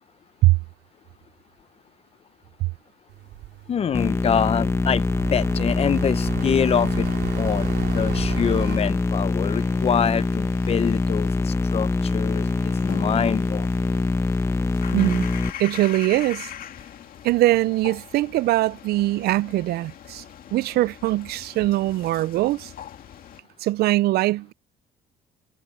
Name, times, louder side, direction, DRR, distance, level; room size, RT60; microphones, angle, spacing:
sound 1, 3.1-8.8, right 16 dB, 85° right, 4.2 m, -36 dB
voice 1, 3.7-5.0 5.3-7.1 7.4-13.7, left 8 dB, 35° left, 0.7 m, -25 dB
sound 2, 3.9-15.5, left 3 dB, 15° left, 1.1 m, -24 dB
sound 3, 8.6-23.4, left 10 dB, 60° left, 2.3 m, -42 dB
voice 2, 14.9-15.3 15.6-16.5 17.2-20.2 20.5-22.7 23.6-24.5, right 17 dB, 70° right, 0.4 m, -22 dB
cardioid pair, 110°, 17 cm